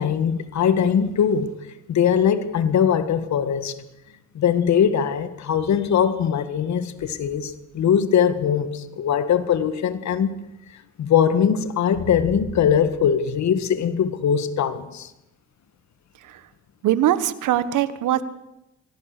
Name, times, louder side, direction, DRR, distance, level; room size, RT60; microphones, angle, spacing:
voice 1, 0.0-1.5 1.9-3.8 4.3-10.3 11.0-15.1, left 8 dB, 65° left, 1.8 m, -21 dB
voice 2, 16.8-18.2, right 12 dB, 85° right, 1.5 m, -21 dB
26.5 x 18.0 x 6.8 m
cardioid pair, 90°, 30 cm